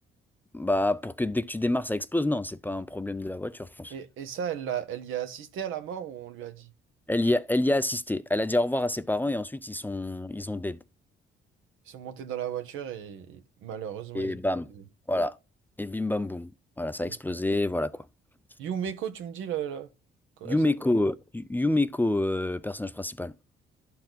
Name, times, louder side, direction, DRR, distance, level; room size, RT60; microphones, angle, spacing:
voice 1, 0.5-3.9 7.1-10.8 14.1-14.7 15.1-15.4 15.8-16.5 16.8-18.1 20.4-23.3, left 1 dB, 10° left, 0.4 m, -27 dB
voice 2, 3.9-6.7 11.9-14.4 14.7-14.8 18.6-19.9 20.4-20.7, right 9 dB, 85° right, 1.0 m, -35 dB
12.0 x 4.3 x 4.0 m
cardioid pair, 90°, 20 cm